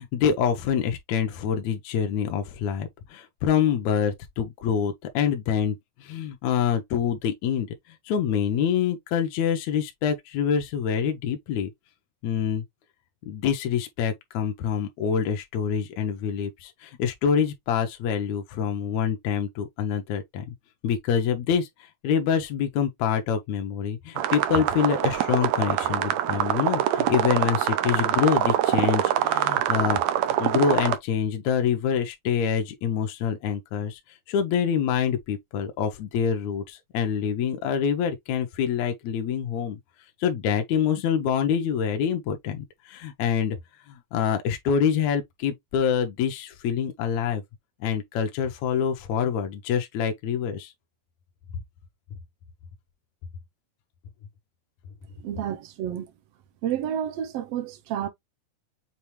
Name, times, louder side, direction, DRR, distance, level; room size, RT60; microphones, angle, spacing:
voice 1, 0.0-7.7 8.0-11.7 12.2-12.6 13.3-20.5 20.8-30.0 30.4-34.0 34.3-39.8 40.2-43.6 43.9-47.4 47.8-50.7, left 7 dB, 75° left, 1.8 m, -26 dB
sound 1, 24.2-31.0, right 12 dB, 85° right, 1.5 m, -24 dB
voice 2, 55.2-56.1 56.6-58.1, right 10 dB, 70° right, 1.5 m, -30 dB
7.0 x 2.5 x 3.1 m
omnidirectional pair, 4.0 m